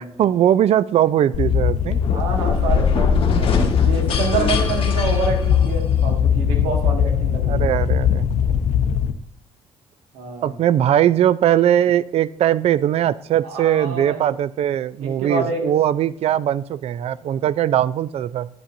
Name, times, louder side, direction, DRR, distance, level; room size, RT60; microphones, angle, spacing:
voice 1, 0.0-2.0 7.5-8.3 10.4-18.5, right 11 dB, 60° right, 18 dB, 0.4 m, -20 dB
sound 1, 1.3-9.1, left 8 dB, 70° left, 0.6 m, -20 dB
sound 2, 2.0-6.0, left 4 dB, 50° left, 1.4 m, -24 dB
voice 2, 2.1-7.6 8.5-8.6 10.1-10.6 13.4-14.3 15.0-15.7, right 4 dB, 85° right, 2 dB, 1.8 m, -27 dB
9.5 x 7.5 x 2.6 m, 0.71 s
supercardioid pair, 80°, 12 cm